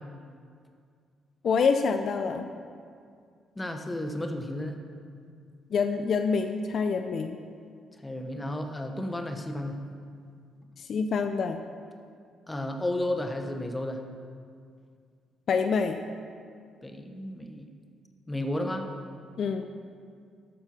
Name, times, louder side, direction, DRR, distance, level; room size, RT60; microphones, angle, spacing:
voice 1, 1.4-2.5 5.7-7.4 10.8-11.6 15.5-16.0 19.4-19.6, left 5 dB, 60° left, 7 dB, 0.5 m, -26 dB
voice 2, 3.6-4.7 8.0-9.8 12.5-14.0 16.8-17.7 18.3-18.8, left 1 dB, 15° left, 4 dB, 0.9 m, -32 dB
12.5 x 4.5 x 5.9 m, 2.2 s
cardioid pair, 90°, 0 cm